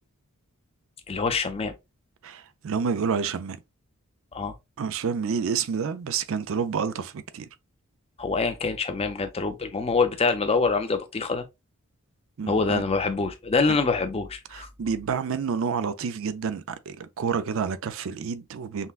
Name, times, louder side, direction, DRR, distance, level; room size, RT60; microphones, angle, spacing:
voice 1, 1.1-1.7 4.3-4.5 8.2-11.5 12.5-14.7, left 4 dB, 25° left, 0.5 m, -25 dB
voice 2, 2.2-3.6 4.8-7.5 12.4-12.8 14.5-18.9, right 6 dB, 65° right, 0.4 m, -29 dB
5.6 x 2.2 x 2.4 m
head